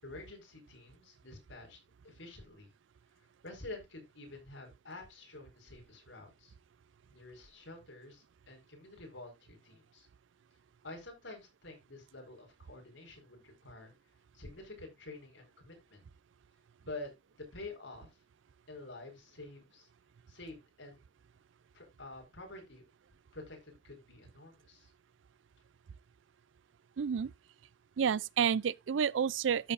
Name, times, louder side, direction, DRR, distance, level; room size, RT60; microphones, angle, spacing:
voice 1, 0.0-1.8 2.0-2.7 3.2-6.5 7.1-10.1 10.8-13.9 14.3-16.0 16.8-17.1 17.4-18.1 18.7-19.9 20.3-21.0 21.7-22.8 23.3-24.9, left 2 dB, 80° left, 4.9 m, -49 dB
voice 2, 27.0-27.3 28.0-29.7, right 7 dB, 80° right, 0.4 m, -30 dB
13.0 x 7.2 x 2.5 m
head